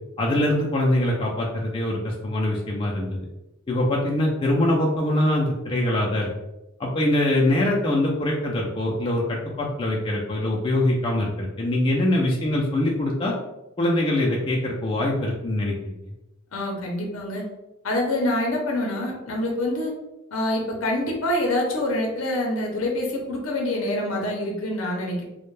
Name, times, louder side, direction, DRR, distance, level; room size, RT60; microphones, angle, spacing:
voice 1, 0.2-3.3 3.7-6.3 6.8-13.3 13.8-15.9, left 1 dB, 25° left, -3 dB, 0.3 m, -23 dB
voice 2, 16.5-17.4 17.8-19.9 20.3-25.2, left 1 dB, 75° left, 0 dB, 0.5 m, -26 dB
2.2 x 2.1 x 3.0 m, 0.97 s
head